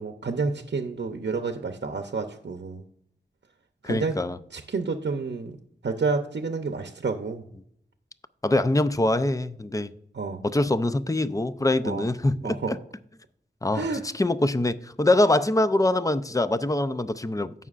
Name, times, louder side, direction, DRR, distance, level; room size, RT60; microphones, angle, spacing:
voice 1, 0.0-2.8 3.9-4.1 4.5-5.6 5.8-7.4 10.1-10.4 11.8-12.0 12.4-12.7 13.7-14.0, right 4 dB, 75° right, 0.7 m, -29 dB
voice 2, 3.8-4.4 8.4-9.9 10.4-12.8 13.6-17.5, left 2 dB, 20° left, 0.5 m, -24 dB
16.5 x 5.6 x 2.5 m
wide cardioid pair, 65°, 18 cm